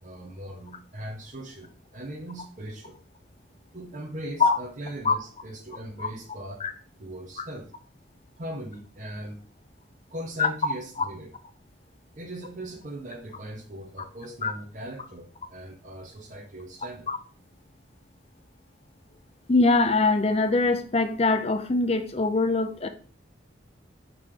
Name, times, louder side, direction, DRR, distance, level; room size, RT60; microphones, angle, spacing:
voice 1, 0.0-3.0 3.7-6.6 7.0-7.7 8.4-9.4 10.1-11.3 12.2-17.1, right 1 dB, 40° right, 0.9 m, -39 dB
voice 2, 19.5-22.9, left 3 dB, 30° left, 0.5 m, -23 dB
6.2 x 3.7 x 4.9 m
head